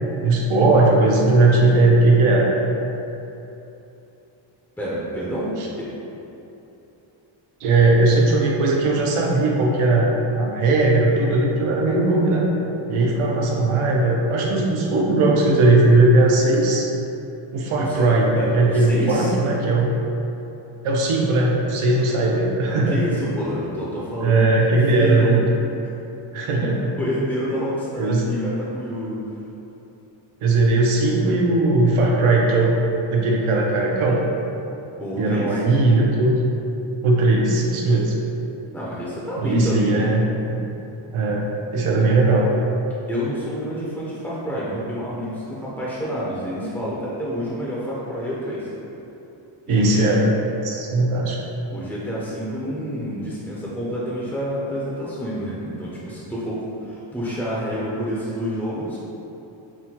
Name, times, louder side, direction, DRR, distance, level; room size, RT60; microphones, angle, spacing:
voice 1, 0.0-2.5 7.6-12.5 12.9-16.9 17.5-19.9 20.8-23.0 24.2-25.4 26.3-26.9 28.0-28.3 30.4-32.8 33.1-34.2 35.2-36.4 37.0-38.2 39.4-40.6 41.1-42.5 49.7-50.3 50.6-51.4, right 2 dB, 90° right, -2 dB, 0.7 m, -18 dB
voice 2, 4.8-5.9 17.8-19.3 22.7-25.4 26.5-26.7 27.0-29.2 35.0-35.6 38.7-40.1 42.0-42.1 43.1-48.7 49.7-50.1 51.7-59.0, equal, 5° left, -7 dB, 0.4 m, -28 dB
6.0 x 2.1 x 2.8 m, 2.9 s
wide cardioid pair, 140°, 49 cm